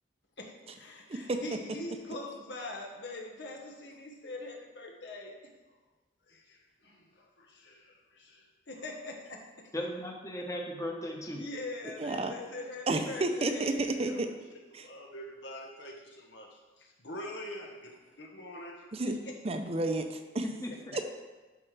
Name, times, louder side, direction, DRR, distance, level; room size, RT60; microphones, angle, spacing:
voice 1, 0.4-5.3 6.3-9.7 11.4-14.2 14.5-18.8 19.2-19.3, left 2 dB, 80° left, 0 dB, 1.3 m, -44 dB
voice 2, 1.1-1.4 12.0-12.3 12.9-14.3 14.7-14.9 18.9-19.2 19.4-20.4 20.9-21.0, right 2 dB, 35° right, 6 dB, 0.5 m, -31 dB
voice 3, 9.7-11.4 20.4-20.9, equal, 20° left, 0 dB, 1.0 m, -37 dB
11.5 x 4.9 x 3.4 m, 1.2 s
head